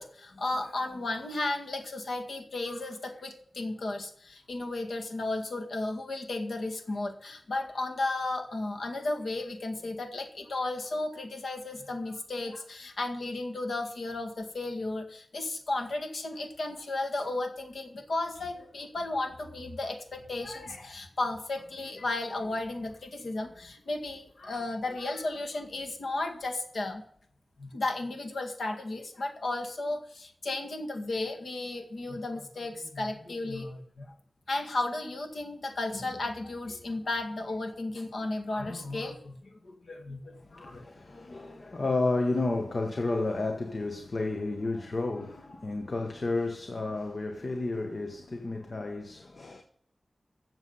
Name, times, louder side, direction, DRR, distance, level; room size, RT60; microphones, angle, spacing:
voice 1, 0.0-27.0 27.6-34.1 34.5-40.9, left 2 dB, 80° left, 1.9 m, -34 dB
voice 2, 40.5-49.6, left 2 dB, 55° left, 1.1 m, -31 dB
14.0 x 7.4 x 5.5 m
wide cardioid pair, 85°, 0 cm